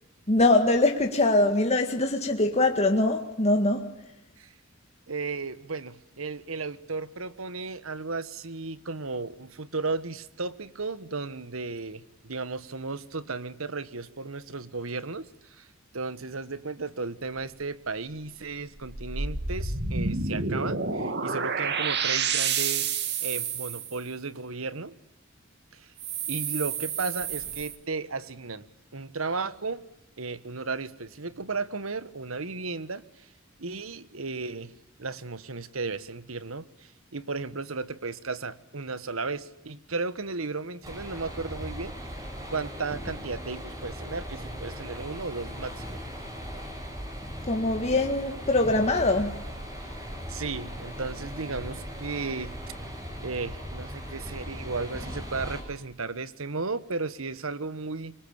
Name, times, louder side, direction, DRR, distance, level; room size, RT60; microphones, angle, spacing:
voice 1, 0.3-4.0 47.4-49.4, left 2 dB, 30° left, 1.9 m, -23 dB
voice 2, 5.1-15.7 15.9-24.9 25.7-25.9 26.3-28.6 28.9-29.8 30.2-33.3 33.6-34.7 35.0-42.1 42.5-46.0 49.8-52.6 53.2-58.1, right 4 dB, 85° right, 1.4 m, -35 dB
sound 1, 18.8-24.0 26.0-27.7, right 5 dB, 55° right, 2.5 m, -29 dB
sound 2, 40.8-55.6, equal, 20° right, 7.0 m, -38 dB
26.5 x 24.5 x 8.8 m
head